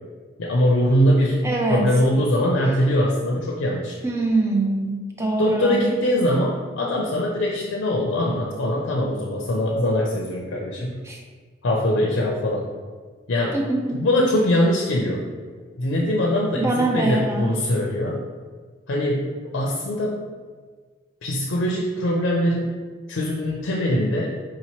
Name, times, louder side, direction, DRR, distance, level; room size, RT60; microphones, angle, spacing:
voice 1, 0.4-4.0 5.4-11.0 11.6-12.6 13.3-13.6 13.9-15.3 15.8-18.2 18.9-20.2 21.2-22.8 23.1-24.3, left 1 dB, 80° left, -2 dB, 0.5 m, -22 dB
voice 2, 1.4-1.9 4.0-5.9 11.0-11.2 13.5-14.1 16.5-17.7, right 2 dB, 15° right, 0 dB, 0.4 m, -24 dB
4.6 x 2.9 x 2.9 m, 1.5 s
head